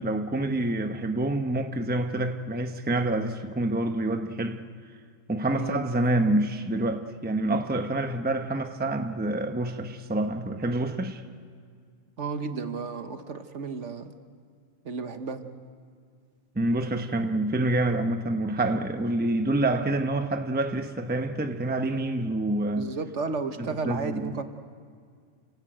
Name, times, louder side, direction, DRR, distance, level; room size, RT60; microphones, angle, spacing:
voice 1, 0.0-4.6 5.3-11.2 16.5-22.9 23.6-24.3, right 2 dB, 10° right, 0.8 m, -27 dB
voice 2, 12.2-14.2 14.8-15.5 22.8-24.4, right 4 dB, 60° right, 1.5 m, -33 dB
29.0 x 16.5 x 9.1 m
omnidirectional pair, 1.4 m